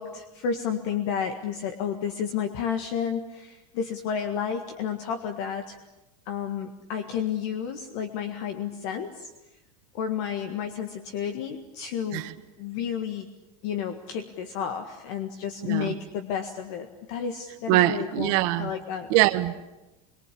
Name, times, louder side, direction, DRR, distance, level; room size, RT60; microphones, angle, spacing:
voice 1, 0.0-5.7 6.2-9.3 9.9-12.2 12.6-13.3 13.6-19.1, left 7 dB, 50° left, 6 dB, 1.8 m, -31 dB
voice 2, 15.6-15.9 17.7-18.7 19.1-19.6, right 16 dB, 45° right, 8 dB, 1.4 m, -23 dB
26.0 x 23.0 x 8.6 m, 1.0 s
supercardioid pair, 180°, 18 cm